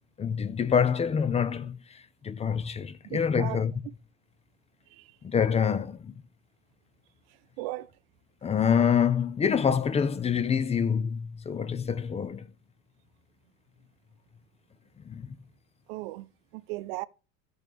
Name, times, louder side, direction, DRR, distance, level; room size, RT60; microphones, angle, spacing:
voice 1, 0.2-3.7 5.2-6.1 8.4-12.5 15.1-15.3, left 7 dB, 20° left, 0.5 m, -26 dB
voice 2, 3.0-3.9 4.9-5.2 7.6-7.9 15.9-16.3 16.5-17.0, right 19 dB, 80° right, 0.6 m, -37 dB
13.5 x 6.2 x 3.3 m
supercardioid pair, 105°, 29 cm